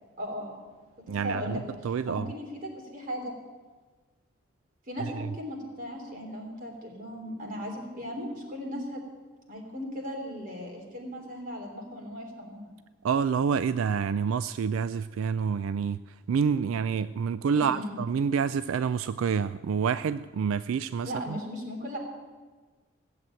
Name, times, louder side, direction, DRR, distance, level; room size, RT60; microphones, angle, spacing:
voice 1, 0.2-0.6 1.2-1.6 2.1-3.3 4.9-9.0 9.5-12.7 17.5-18.0 21.0-22.0, equal, 40° right, 1 dB, 3.2 m, -37 dB
voice 2, 1.1-2.3 5.0-5.3 13.0-21.4, right 6 dB, 80° right, 14 dB, 0.3 m, -28 dB
16.0 x 7.8 x 8.8 m, 1.4 s
head